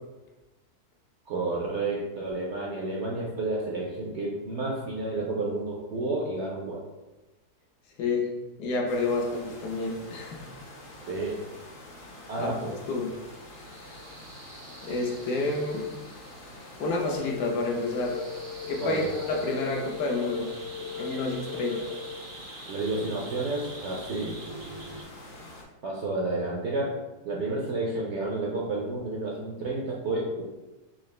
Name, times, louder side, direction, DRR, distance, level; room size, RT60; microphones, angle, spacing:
voice 1, 1.3-6.8 11.1-11.3 12.3-12.7 18.8-19.1 22.7-24.4 25.8-27.0 27.2-30.4, right 2 dB, 65° right, -3 dB, 0.7 m, -30 dB
voice 2, 8.6-10.4 12.4-12.5 12.9-13.1 14.8-15.8 16.8-18.2 18.7-20.5 21.0-21.9, left 3 dB, 80° left, 0 dB, 1.3 m, -29 dB
sound 1, 8.9-25.6, left 1 dB, 50° left, 0.7 m, -47 dB
sound 2, 13.3-25.0, right 2 dB, 90° right, 1.5 m, -47 dB
sound 3, 17.2-22.2, left 6 dB, 65° left, 1.1 m, -38 dB
4.1 x 2.4 x 3.1 m, 1.1 s
omnidirectional pair, 1.7 m